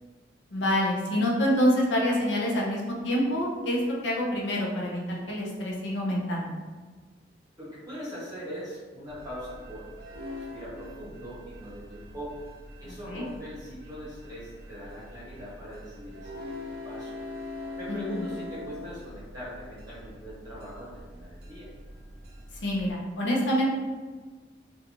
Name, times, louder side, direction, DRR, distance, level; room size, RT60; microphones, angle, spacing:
voice 1, 0.5-6.5 13.1-13.2 17.9-18.2 22.6-23.7, equal, 75° left, -3 dB, 0.6 m, -26 dB
voice 2, 7.6-10.1 10.4-12.4 12.8-17.1 17.8-21.7, equal, 20° right, -10 dB, 0.8 m, -41 dB
sound 1, 9.1-22.9, left 1 dB, 55° right, 0.4 m, -43 dB
2.5 x 2.3 x 2.9 m, 1.4 s
head